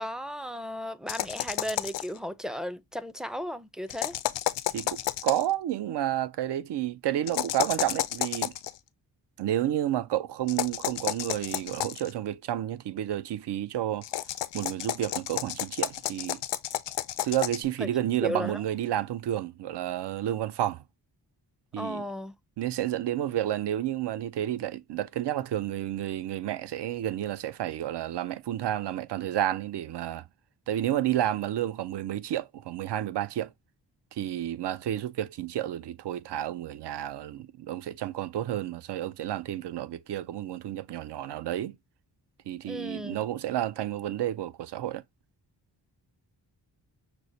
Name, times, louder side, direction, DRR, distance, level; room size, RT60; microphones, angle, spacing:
voice 1, 0.0-4.2 17.8-17.9 18.2-18.6 21.8-22.3 42.7-43.2, left 1 dB, ahead, 0.4 m, -35 dB
sound 1, 1.1-2.2 3.9-5.5 7.3-8.7 10.5-12.1 14.0-17.6, left 13 dB, 85° left, 0.5 m, -31 dB
voice 2, 4.7-8.5 9.4-14.1 14.5-16.4 17.2-20.8 21.7-22.0 22.6-30.3 30.7-33.5 34.1-41.8 42.5-45.0, right 12 dB, 75° right, 0.6 m, -31 dB
6.3 x 2.1 x 2.6 m
cardioid pair, 75°, 42 cm